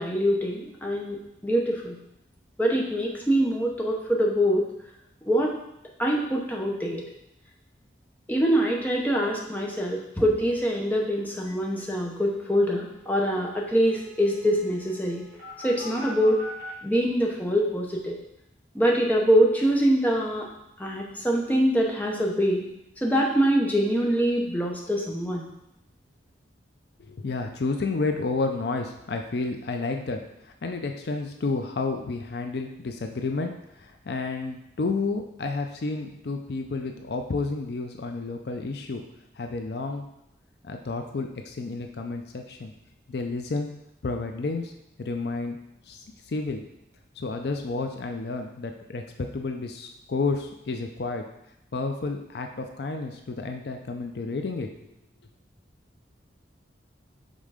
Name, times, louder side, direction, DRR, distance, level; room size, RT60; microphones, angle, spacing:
voice 1, 0.0-2.0 2.6-4.7 5.3-5.5 6.0-7.0 8.3-15.2 15.6-16.4 16.8-18.2 18.7-20.5 20.8-22.6 23.0-25.5, equal, 10° left, -1 dB, 0.8 m, -24 dB
sound 1, 11.4-11.5 11.8-11.9 12.1-16.7, left 1 dB, 45° right, 2.0 m, -44 dB
voice 2, 27.0-39.0 39.4-40.1 40.6-42.7 43.1-43.7 44.0-44.7 45.0-45.6 45.9-46.6 47.2-51.2 51.7-54.7, left 3 dB, 60° left, 4 dB, 0.4 m, -31 dB
5.4 x 3.7 x 4.9 m, 0.83 s
head